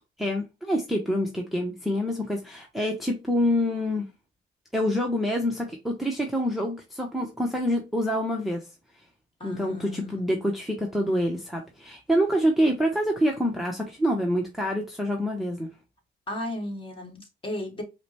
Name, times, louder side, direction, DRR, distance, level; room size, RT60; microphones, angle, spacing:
voice 1, 0.2-4.0 4.7-8.7 9.4-15.7, equal, ahead, 0.8 m, -26 dB
voice 2, 9.4-10.2 16.3-17.8, left 1 dB, 25° left, 1.6 m, -35 dB
4.9 x 2.1 x 2.8 m
cardioid pair, 90°, 20 cm